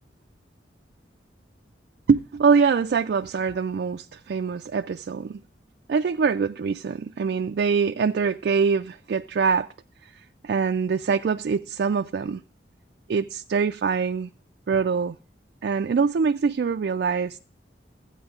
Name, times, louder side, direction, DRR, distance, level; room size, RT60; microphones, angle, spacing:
voice 1, 2.1-5.4 5.9-9.7 10.0-10.1 10.4-12.4 13.1-14.3 14.7-15.2 15.6-17.4, right 5 dB, 60° right, 0.3 m, -24 dB
14.0 x 8.8 x 2.4 m
head